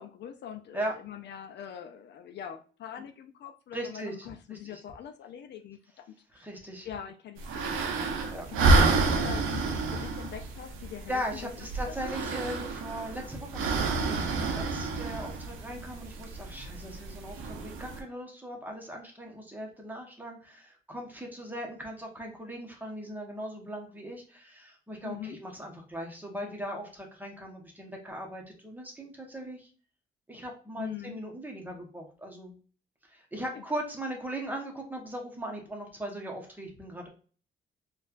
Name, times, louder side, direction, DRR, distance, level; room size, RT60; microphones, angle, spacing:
voice 1, 0.0-6.1 6.3-6.5 6.8-8.2 8.5-12.2 25.0-25.4 30.8-31.2 33.4-33.6, left 9 dB, 60° left, 6 dB, 0.4 m, -43 dB
voice 2, 3.7-4.1 4.5-4.8 6.3-6.9 8.3-8.5 9.6-9.7 11.1-29.7 30.3-32.5 33.1-37.1, right 1 dB, 10° right, 1 dB, 1.0 m, -39 dB
sound 1, 7.4-18.0, right 3 dB, 90° right, 0.6 m, -29 dB
4.2 x 2.4 x 2.4 m, 0.39 s
cardioid pair, 90°, 20 cm